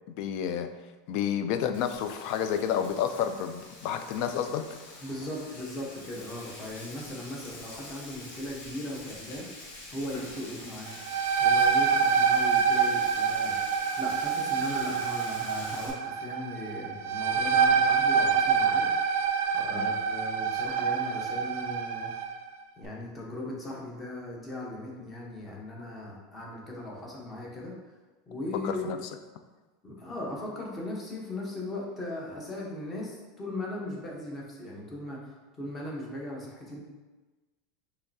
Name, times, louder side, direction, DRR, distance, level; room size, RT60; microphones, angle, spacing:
voice 1, 0.1-0.7 1.1-4.8 19.7-19.9 28.6-29.0, left 8 dB, 50° left, 9 dB, 0.3 m, -30 dB
Frying (food), 1.7-15.9, left 2 dB, 80° left, 1.3 m, -46 dB
voice 2, 5.0-9.5 9.9-10.9 11.4-13.6 14.0-18.9 19.5-22.1 22.8-27.7 28.3-29.0 29.8-35.3 35.6-36.8, left 1 dB, 20° left, -3 dB, 0.9 m, -38 dB
sound 1, 10.9-22.4, right 6 dB, 65° right, 0.4 m, -26 dB
5.6 x 3.1 x 2.7 m, 1.2 s
supercardioid pair, 155°, 0 cm